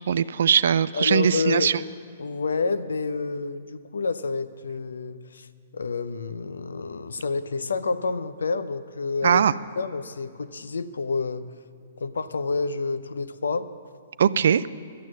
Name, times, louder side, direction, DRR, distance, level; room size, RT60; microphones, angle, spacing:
voice 1, 0.1-1.8 9.2-9.5 14.2-14.6, right 8 dB, 65° right, 16 dB, 0.4 m, -20 dB
voice 2, 0.9-1.7 2.2-5.5 5.7-9.4 9.8-11.5 12.0-13.7, left 4 dB, 75° left, 13 dB, 0.6 m, -29 dB
12.5 x 9.1 x 7.4 m, 2.2 s
figure-of-eight pair, 120°, 0 cm